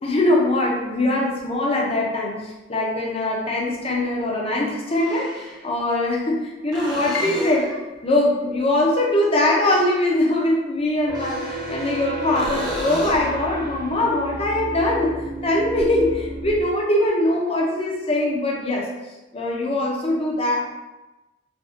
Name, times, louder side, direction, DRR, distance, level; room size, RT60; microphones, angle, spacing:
voice 1, 0.0-7.7 8.0-18.9 19.3-20.6, left 1 dB, 30° left, -2 dB, 0.6 m, -22 dB
sound 1, 1.4-1.5 3.5-3.6 4.9-5.7 6.7-7.9 11.0-12.0 12.4-13.4 17.1-17.2, equal, 20° right, 0.8 m, -34 dB
Piano, 7.1-13.1 13.4-14.6 15.0-15.1 15.8-16.1, left 3 dB, 85° left, 0.5 m, -39 dB
sound 2, 11.1-16.6, right 1 dB, 60° right, 0.7 m, -33 dB
3.4 x 2.3 x 2.7 m, 1.1 s
head